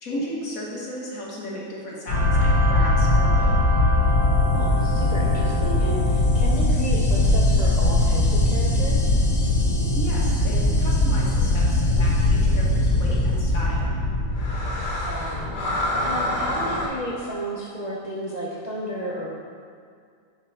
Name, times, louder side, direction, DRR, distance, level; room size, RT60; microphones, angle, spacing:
voice 1, 0.0-3.5 9.9-13.9, equal, 55° left, -4 dB, 1.9 m, -34 dB
sound 1, 2.1-16.9, left 1 dB, 75° left, 2.0 m, -21 dB
voice 2, 4.5-9.1 15.0-15.5 16.0-19.3, right 1 dB, 30° right, -6 dB, 0.8 m, -32 dB
7.6 x 5.6 x 4.9 m, 2.2 s
omnidirectional pair, 1.8 m